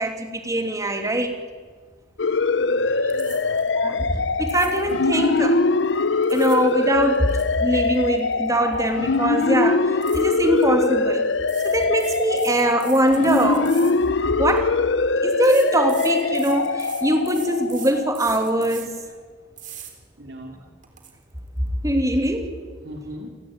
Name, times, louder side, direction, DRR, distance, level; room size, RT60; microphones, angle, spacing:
voice 1, 0.0-1.3 3.8-5.6 6.3-9.8 10.1-11.3 11.6-13.7 14.4-14.7 15.2-19.0 21.8-22.6, right 1 dB, 20° right, 5 dB, 2.9 m, -22 dB
sound 1, 2.2-18.6, left 3 dB, 80° left, 0.9 m, -23 dB
voice 2, 2.5-3.6 3.9-4.1 20.2-20.6 22.8-23.3, equal, 65° right, 2 dB, 3.1 m, -39 dB
sound 2, 3.1-3.7 4.4-5.0 6.0-6.7 7.0-8.9 9.2-9.4 10.0-10.7 11.4-14.6 15.4-19.1 19.6-19.9 20.4-20.5 20.8-21.1, right 10 dB, 45° right, 3.9 m, -42 dB
30.0 x 18.5 x 9.0 m, 1.5 s
head